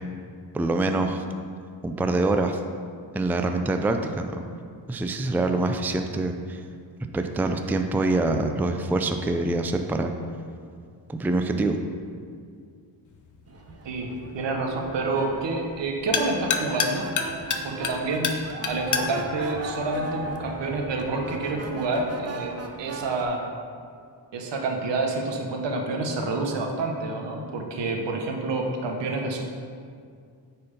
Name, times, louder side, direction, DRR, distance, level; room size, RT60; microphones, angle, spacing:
voice 1, 0.5-1.2 1.8-2.6 3.1-4.4 4.9-6.6 7.1-10.1 11.1-11.8, right 2 dB, 5° right, 6 dB, 0.4 m, -25 dB
sound 1, 13.1-20.7, left 5 dB, 40° left, 0.8 m, -32 dB
sound 2, 13.5-23.2, right 3 dB, 35° right, 0.8 m, -38 dB
voice 2, 13.8-17.1 17.6-18.4 18.7-23.4 24.3-29.4, right 2 dB, 70° right, 2 dB, 1.3 m, -28 dB
8.7 x 4.5 x 5.2 m, 2.2 s
cardioid pair, 100°, 45 cm